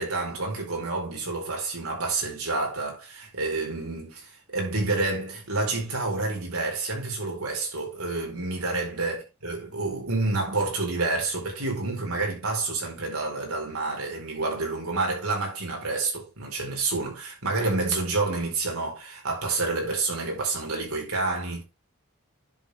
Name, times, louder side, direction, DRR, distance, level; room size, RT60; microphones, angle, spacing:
voice 1, 0.0-21.6, right 3 dB, 80° right, 4.4 m, -29 dB
10.0 x 6.6 x 3.5 m
head